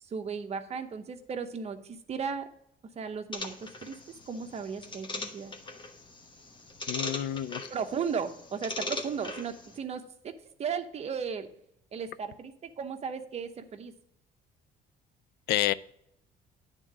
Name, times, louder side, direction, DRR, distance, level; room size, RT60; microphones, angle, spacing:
voice 1, 0.0-2.5 2.9-4.0 4.3-5.5 7.7-10.3 10.6-11.5 11.9-13.9, right 6 dB, 40° right, 6 dB, 0.9 m, -35 dB
sound 1, 3.3-9.8, left 2 dB, 30° left, 1.1 m, -40 dB
voice 2, 6.9-7.7 15.5-15.7, left 13 dB, 75° left, 17 dB, 0.4 m, -29 dB
9.8 x 3.7 x 5.9 m, 0.76 s
cardioid pair, 110°, 17 cm